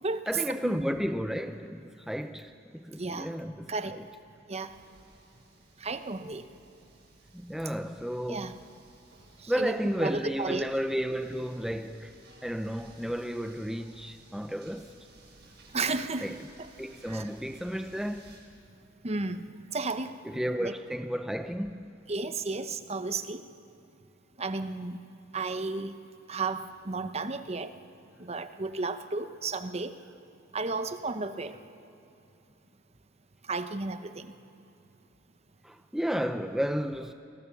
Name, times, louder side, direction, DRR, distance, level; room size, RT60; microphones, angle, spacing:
voice 1, 0.3-4.0 7.3-8.6 9.5-12.2 12.4-14.9 16.2-16.4 16.8-18.4 20.2-22.0 35.6-37.1, equal, ahead, 0.5 m, -33 dB
voice 2, 3.0-3.3 3.7-4.0 4.5-4.7 5.8-6.5 8.3-8.5 9.4-10.7 15.7-16.3 16.6-16.7 17.1-17.3 19.0-19.4 19.7-20.2 20.6-20.7 22.1-23.5 24.4-25.0 25.3-26.0 26.3-27.7 28.2-30.0 30.5-31.6 33.4-34.3, right 3 dB, 30° right, 0.9 m, -33 dB
sound 1, 4.7-18.4, right 2 dB, 55° right, 7.2 m, -57 dB
28.5 x 21.0 x 7.0 m
head